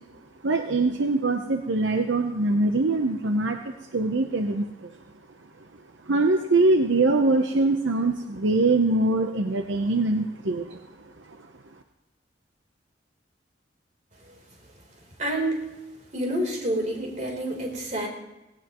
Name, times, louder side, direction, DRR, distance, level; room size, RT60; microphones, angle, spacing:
voice 1, 0.4-4.9 6.1-10.8, right 2 dB, 75° right, 5 dB, 0.8 m, -23 dB
voice 2, 15.2-15.6 16.1-18.1, right 1 dB, 40° right, 1 dB, 3.7 m, -28 dB
17.5 x 17.5 x 3.0 m, 1.0 s
head